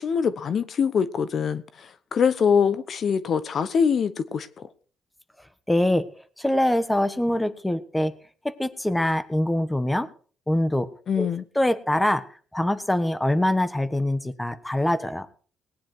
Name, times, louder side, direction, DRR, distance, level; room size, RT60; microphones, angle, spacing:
voice 1, 0.0-4.7 11.1-11.4, left 6 dB, 55° left, 0.9 m, -24 dB
voice 2, 5.7-6.0 6.4-8.1 8.6-10.1 10.5-10.9 11.2-11.3 11.5-12.2 12.5-15.3, left 1 dB, 10° left, 1.2 m, -23 dB
19.0 x 10.0 x 4.6 m
cardioid pair, 90°, 0 cm